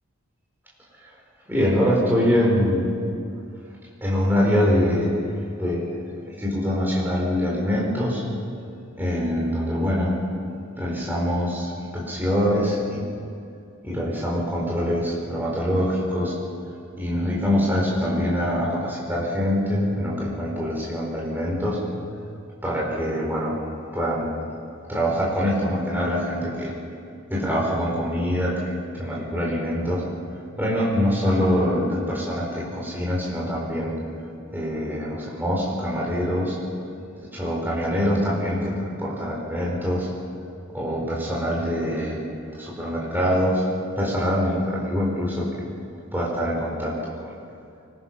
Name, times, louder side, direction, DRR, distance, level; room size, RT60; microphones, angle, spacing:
voice 1, 1.5-2.9 4.0-5.2 5.6-6.0 6.3-8.2 9.0-10.2 10.8-13.0 13.8-16.4 17.0-21.8 22.6-23.6 23.9-24.3 24.9-26.7 27.3-30.0 30.6-33.9 34.5-36.6 37.2-40.1 40.7-42.2 42.6-43.6 44.0-45.5 46.1-47.3, equal, 10° right, -4 dB, 4.5 m, -24 dB
25.0 x 20.5 x 6.0 m, 2.5 s
head